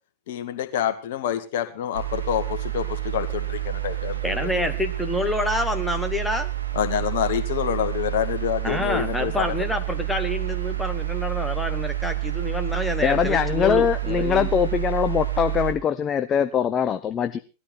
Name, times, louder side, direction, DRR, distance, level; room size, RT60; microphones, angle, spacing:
voice 1, 0.3-4.2 4.6-4.7 6.7-9.5, left 10 dB, 55° left, 9 dB, 1.9 m, -27 dB
sound 1, 1.9-15.7, right 15 dB, 80° right, 1.9 m, -29 dB
voice 2, 4.2-6.5 8.6-14.5, left 1 dB, 5° left, 7 dB, 2.0 m, -27 dB
voice 3, 13.0-17.4, left 8 dB, 25° left, 9 dB, 0.8 m, -22 dB
18.5 x 12.5 x 4.4 m, 0.34 s
figure-of-eight pair, 90°, 0 cm